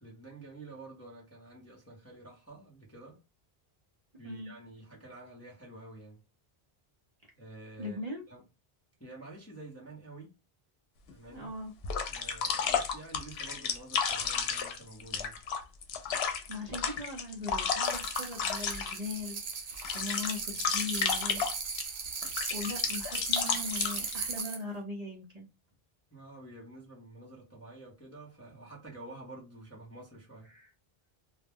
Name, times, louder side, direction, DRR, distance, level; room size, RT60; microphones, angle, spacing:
voice 1, 0.0-3.2 4.2-6.2 7.3-8.0 8.3-8.4 9.0-10.3 11.1-11.5 12.1-15.4 22.8-22.9 26.1-30.5, right 2 dB, 15° left, 0.7 m, -49 dB
voice 2, 7.8-8.2 11.3-11.7 16.5-19.4 19.9-21.4 22.5-25.5 30.5-30.7, left 2 dB, 45° right, 0.7 m, -39 dB
sound 1, 11.1-11.2 11.8-19.1 19.5-21.8 22.2-24.4, left 6 dB, 80° left, 0.8 m, -32 dB
sound 2, 17.8-24.6, right 5 dB, 85° right, 0.9 m, -38 dB
2.3 x 2.1 x 3.4 m
omnidirectional pair, 1.0 m